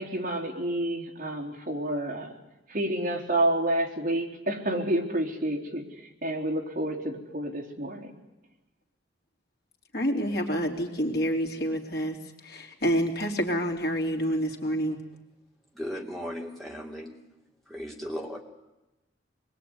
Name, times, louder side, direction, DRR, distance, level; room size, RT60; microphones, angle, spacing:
voice 1, 0.0-2.4 2.7-5.9 6.2-8.2, right 1 dB, 50° right, 3.8 m, -29 dB
voice 2, 9.9-15.0, equal, 55° left, 3.5 m, -28 dB
voice 3, 15.7-17.2 17.7-18.4, equal, ahead, 3.2 m, -36 dB
26.5 x 21.0 x 9.7 m
head